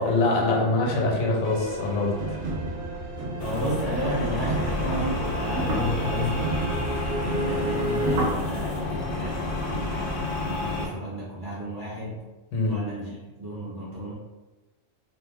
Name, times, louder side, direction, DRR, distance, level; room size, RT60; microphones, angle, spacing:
voice 1, 0.0-2.4 12.5-12.8, left 2 dB, 75° left, -2 dB, 1.1 m, -24 dB
sound 1, 1.4-8.3, right 1 dB, 65° right, 0.8 m, -32 dB
sound 2, 3.4-10.9, left 2 dB, 60° left, 0.6 m, -30 dB
voice 2, 3.4-6.8 7.2-12.2 12.7-13.1 13.4-14.1, equal, 30° right, -7 dB, 0.4 m, -32 dB
sound 3, 3.8-10.3, right 1 dB, 90° right, 1.1 m, -34 dB
2.5 x 2.1 x 3.4 m, 1.1 s
omnidirectional pair, 1.4 m